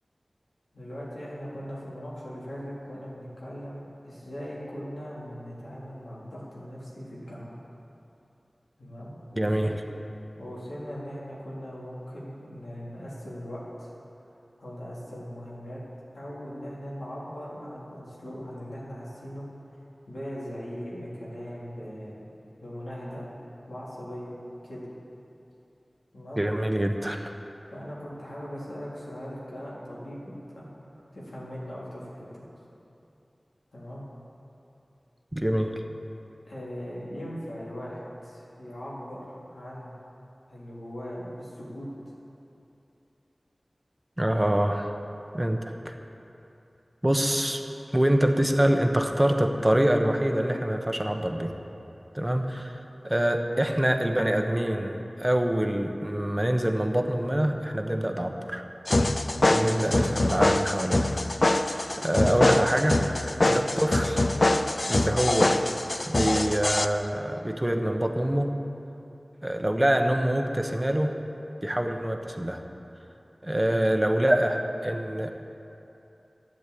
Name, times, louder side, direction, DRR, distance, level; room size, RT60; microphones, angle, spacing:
voice 1, 0.7-7.5 8.8-9.7 10.4-13.9 14.6-15.8 16.1-19.4 20.1-22.3 22.6-23.3 23.7-24.4 24.6-24.8 26.1-26.4 27.7-30.7 31.1-32.5 33.7-34.0 36.5-39.9 40.5-41.9 59.3-59.6 63.3-63.6 73.4-73.7, equal, 90° left, -7 dB, 3.6 m, -39 dB
voice 2, 9.4-9.7 26.4-27.3 35.3-35.7 44.2-44.9 45.3-46.0 47.0-47.6 47.9-51.5 52.1-58.6 59.5-61.1 61.4-61.7 62.0-63.0 63.4-64.2 64.8-65.5 66.1-68.5 69.4-71.2 71.6-72.6 73.4-75.3, right 1 dB, 20° right, 4 dB, 1.0 m, -25 dB
sound 1, 58.9-66.9, left 2 dB, 50° left, 0.6 m, -24 dB
12.0 x 9.3 x 8.4 m, 2.8 s
wide cardioid pair, 55°, 0 cm